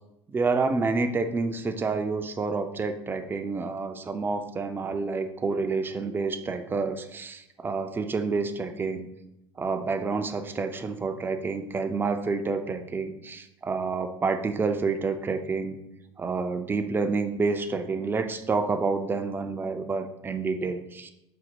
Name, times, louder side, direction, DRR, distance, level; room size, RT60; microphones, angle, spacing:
voice 1, 0.3-9.1 9.6-15.8 16.2-21.1, right 4 dB, 15° right, 7 dB, 0.4 m, -28 dB
4.1 x 2.1 x 4.5 m, 0.87 s
hypercardioid pair, 75°, 14 cm